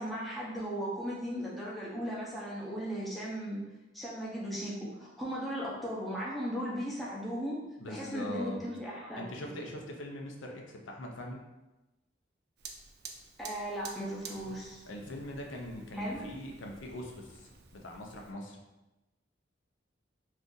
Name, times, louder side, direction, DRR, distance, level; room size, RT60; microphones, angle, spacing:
voice 1, 0.0-3.6 3.9-7.6 7.9-9.6 13.4-14.8 15.9-16.3, equal, ahead, -6 dB, 0.6 m, -37 dB
voice 2, 7.8-8.6 9.2-11.4 14.9-18.6, left 1 dB, 90° left, 1 dB, 0.5 m, -41 dB
Fire, 12.6-18.3, right 5 dB, 55° right, 0.4 m, -50 dB
2.6 x 2.4 x 3.8 m, 1.0 s
head